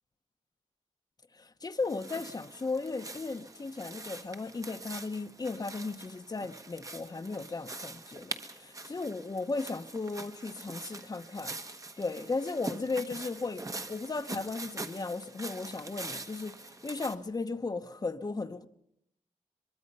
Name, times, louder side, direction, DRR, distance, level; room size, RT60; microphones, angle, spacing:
voice 1, 1.3-11.5 12.0-18.7, left 3 dB, 30° left, 0.9 m, -36 dB
sound 1, 1.8-17.1, right 2 dB, 25° right, 1.3 m, -44 dB
23.5 x 22.0 x 5.4 m
wide cardioid pair, 145°, 13 cm